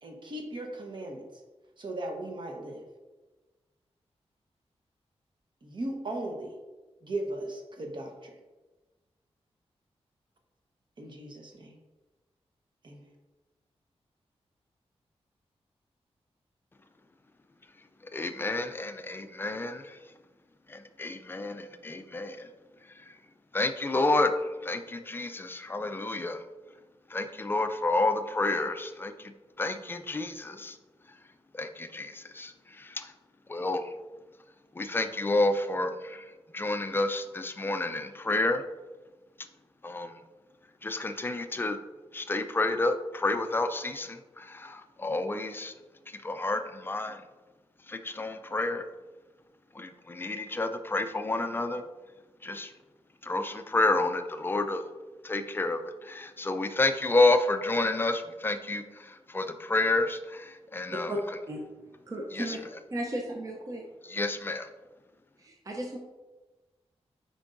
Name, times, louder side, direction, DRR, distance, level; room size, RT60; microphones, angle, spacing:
voice 1, 0.0-1.2 1.8-2.8 5.6-6.5 7.0-8.4 11.0-11.8 12.8-13.1, right 1 dB, 45° right, 2 dB, 1.0 m, -37 dB
voice 2, 18.1-20.0 20.7-22.5 23.5-24.3 24.6-26.4 27.1-30.8 31.5-33.1 33.5-33.9 34.8-36.3 36.5-38.6 39.8-40.2 40.8-41.8 42.1-45.7 46.2-47.2 47.9-48.9 49.7-51.8 52.4-52.7 53.2-54.8 55.2-61.1 62.3-62.6 64.0-64.7, left 2 dB, 20° left, 8 dB, 0.4 m, -30 dB
voice 3, 62.1-62.6 62.9-63.8 65.4-66.0, right 1 dB, 30° right, 0 dB, 0.6 m, -35 dB
8.2 x 5.2 x 2.5 m, 1.2 s
wide cardioid pair, 170°, 11 cm